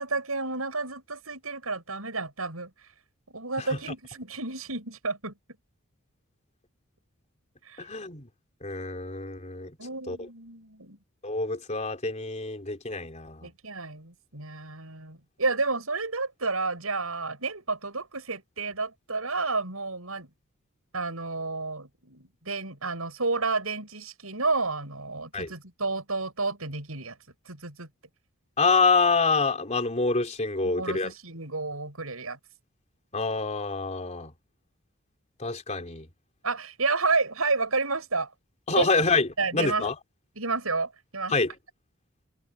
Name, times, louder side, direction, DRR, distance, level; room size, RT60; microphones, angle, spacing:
voice 1, 0.0-2.7 3.3-5.3 7.6-7.8 9.8-11.0 13.4-20.3 20.9-27.2 27.5-27.9 30.6-32.4 36.4-38.3 38.7-38.9 39.4-39.9 40.4-41.3, right 3 dB, 85° right, 7.9 m, -31 dB
voice 2, 7.8-8.3 8.6-9.7 10.1-10.2 11.2-13.5 25.3-25.5 28.6-31.1 33.1-34.3 35.4-36.1 38.7-40.0 41.3-41.5, left 4 dB, 35° left, 3.7 m, -26 dB
head